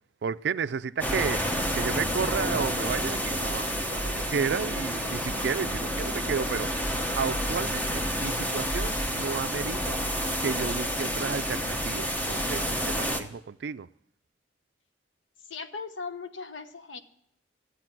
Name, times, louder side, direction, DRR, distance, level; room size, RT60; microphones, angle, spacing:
voice 1, 0.2-6.8 7.2-10.0 10.4-13.9, right 6 dB, 60° right, 0.4 m, -32 dB
sound 1, 1.0-13.2, equal, 10° left, 0.9 m, -29 dB
voice 2, 15.5-17.0, left 4 dB, 80° left, 1.0 m, -38 dB
14.5 x 8.5 x 6.0 m
head